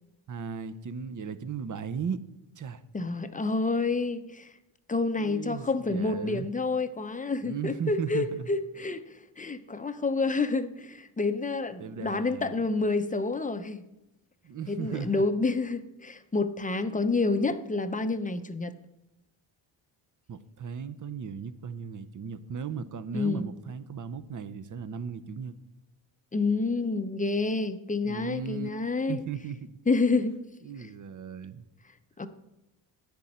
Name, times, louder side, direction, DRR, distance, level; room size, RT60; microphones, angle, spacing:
voice 1, 0.3-2.2 2.6-2.8 5.2-6.5 7.4-8.5 11.8-12.6 14.4-15.2 20.3-25.5 28.0-28.7 29.1-29.7 30.6-31.7, right 6 dB, 40° right, 11 dB, 0.8 m, -36 dB
voice 2, 2.9-4.5 4.9-13.8 14.7-18.7 23.1-23.5 26.3-29.2 29.9-30.4 30.8-30.9 32.2-32.3, left 3 dB, 15° left, 10 dB, 0.7 m, -28 dB
10.5 x 9.2 x 4.3 m, 0.90 s
cardioid pair, 85°, 48 cm